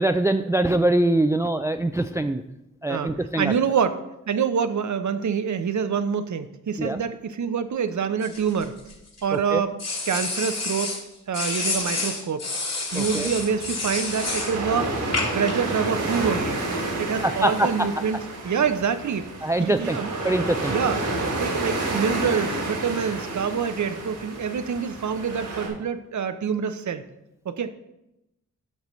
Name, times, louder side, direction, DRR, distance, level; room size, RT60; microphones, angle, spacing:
voice 1, 0.0-2.4 2.8-3.5 6.8-7.0 9.3-9.6 12.9-13.3 17.2-17.9 19.4-20.0 20.2-20.7, right 1 dB, 10° right, 8 dB, 0.3 m, -23 dB
voice 2, 2.9-4.0 4.3-8.8 9.2-9.8 10.1-11.0 11.3-12.5 12.9-14.9 15.3-16.6 17.0-18.2 18.4-19.3 19.6-20.2 20.7-21.0 21.4-27.0 27.4-27.7, right 6 dB, 65° right, 10 dB, 0.7 m, -26 dB
sound 1, 8.2-9.2 9.8-11.0 11.3-14.6 15.1-15.5, left 3 dB, 55° left, 1.9 m, -29 dB
sound 2, 12.9-25.7, right 2 dB, 85° right, 2.6 m, -30 dB
12.0 x 5.4 x 3.1 m, 0.89 s
cardioid pair, 55°, 32 cm